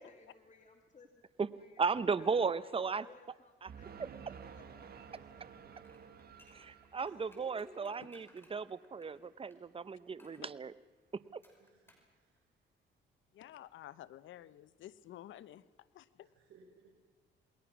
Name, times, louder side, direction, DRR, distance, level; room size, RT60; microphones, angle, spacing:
voice 1, 0.0-1.2 1.6-5.9, left 4 dB, 35° left, 2.3 m, -63 dB
voice 2, 1.8-3.0 3.6-3.7 6.5-10.7 11.3-11.4, right 5 dB, 30° right, 0.9 m, -35 dB
sound 1, 3.7-7.5, right 7 dB, 50° right, 1.9 m, -52 dB
sound 2, 5.8-9.6 10.2-10.5 11.4-12.1 12.4-12.5, left 1 dB, 10° left, 5.8 m, -65 dB
voice 3, 7.0-8.4 11.6-12.4 16.3-16.9, right 4 dB, 70° right, 4.8 m, -60 dB
voice 4, 13.3-15.6 15.9-16.3, left 12 dB, 75° left, 0.9 m, -51 dB
28.0 x 21.0 x 6.1 m
cardioid pair, 90°, 20 cm